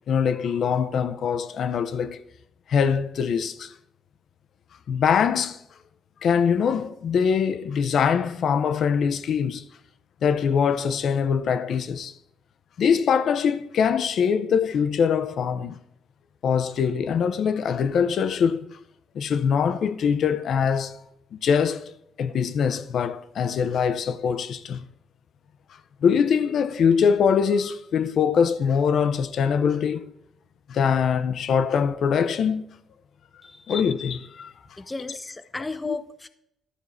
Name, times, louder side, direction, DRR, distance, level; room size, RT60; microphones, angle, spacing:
voice 1, 0.1-2.2 2.7-3.7 4.9-5.6 6.2-9.6 10.2-12.1 12.8-15.8 16.4-18.7 19.1-21.0 21.3-21.9 22.2-24.8 26.0-30.0 30.7-32.6 33.7-34.5 35.8-36.0, left 7 dB, 65° left, 0.7 m, -23 dB
voice 2, 34.8-36.3, left 3 dB, 20° left, 0.5 m, -34 dB
12.5 x 4.6 x 5.6 m
cardioid pair, 90°, 0 cm